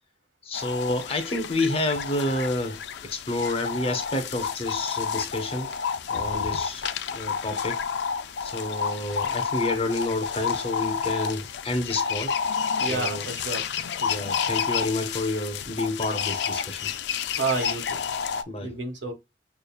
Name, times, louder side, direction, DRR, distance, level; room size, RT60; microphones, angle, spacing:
sound 1, 0.5-18.4, left 6 dB, 70° left, 0.4 m, -30 dB
voice 1, 0.5-5.7 6.1-6.8 7.1-7.8 8.4-12.3 12.8-13.2 14.0-16.9 18.5-18.7, left 2 dB, 35° left, 0.7 m, -29 dB
voice 2, 12.8-13.7 17.4-18.0 18.6-19.1, right 3 dB, 80° right, 1.5 m, -30 dB
6.7 x 2.3 x 2.3 m
head